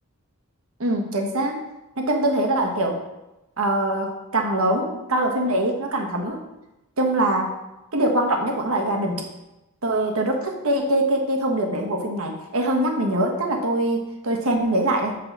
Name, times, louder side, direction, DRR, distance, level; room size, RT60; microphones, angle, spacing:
voice 1, 0.8-1.6 2.0-3.0 3.6-6.4 7.0-7.6 7.9-9.2 9.8-15.1, right 1 dB, 70° right, 2 dB, 1.3 m, -23 dB
6.2 x 4.8 x 6.1 m, 0.97 s
head